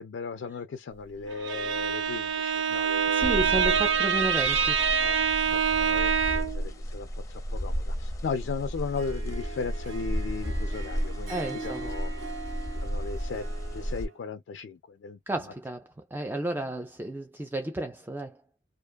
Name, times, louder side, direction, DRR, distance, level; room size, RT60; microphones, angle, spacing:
voice 1, 0.0-3.4 5.0-5.2 5.5-12.1 12.8-13.4 13.7-15.2, left 5 dB, 65° left, 0.3 m, -36 dB
Bowed string instrument, 1.3-6.7, right 7 dB, 90° right, 0.5 m, -25 dB
voice 2, 3.1-4.8 11.3-11.9 15.3-18.4, right 1 dB, 10° right, 0.3 m, -32 dB
sound 1, 3.2-14.1, equal, 20° left, 0.7 m, -33 dB
Harp, 8.8-14.1, right 3 dB, 70° right, 0.9 m, -41 dB
2.5 x 2.3 x 2.2 m
head